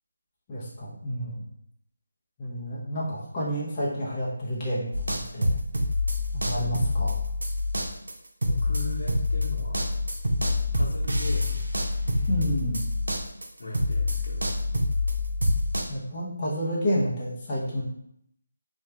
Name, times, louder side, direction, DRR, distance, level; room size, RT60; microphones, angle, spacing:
voice 1, 0.5-1.4 2.4-5.5 6.3-7.2 12.3-12.9 15.9-17.8, equal, 20° left, -6 dB, 0.7 m, -30 dB
sound 1, 4.9-13.5 13.7-15.8, left 2 dB, 85° right, 0.6 m, -26 dB
voice 2, 8.4-9.9 10.7-11.6 13.6-14.6, left 1 dB, 80° left, -5 dB, 0.9 m, -37 dB
2.8 x 2.4 x 3.3 m, 0.73 s
figure-of-eight pair, 165°, 0 cm